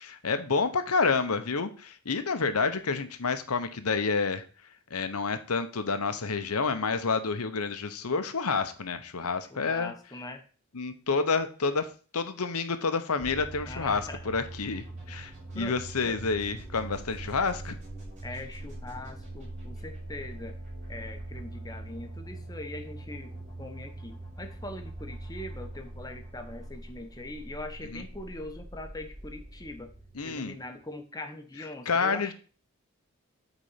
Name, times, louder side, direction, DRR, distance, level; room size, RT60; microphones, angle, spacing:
voice 1, 0.0-4.4 4.9-9.9 10.7-17.8 27.9-28.0 30.2-30.6 31.9-32.3, left 4 dB, 90° left, 10 dB, 0.9 m, -29 dB
voice 2, 9.5-10.4 13.6-14.3 15.6-15.8 16.0-16.2 18.2-20.6 20.9-29.9 30.2-32.3, left 2 dB, 15° left, 6 dB, 0.9 m, -42 dB
sound 1, 13.2-30.9, right 2 dB, 35° right, 4.3 m, -42 dB
8.4 x 4.1 x 5.7 m, 0.38 s
head